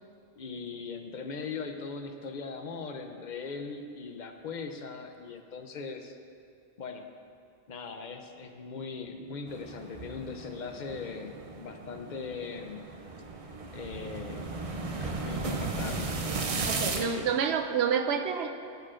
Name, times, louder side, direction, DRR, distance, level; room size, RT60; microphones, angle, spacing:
voice 1, 0.4-6.2 6.8-7.1 7.7-12.8 13.7-16.2 16.9-17.3, left 4 dB, 50° left, 5 dB, 0.6 m, -40 dB
sound 1, 9.5-17.1, right 3 dB, 40° right, 0.6 m, -36 dB
voice 2, 16.6-18.5, right 7 dB, 70° right, 6 dB, 0.8 m, -28 dB
15.0 x 6.8 x 2.5 m, 2.4 s
omnidirectional pair, 1.2 m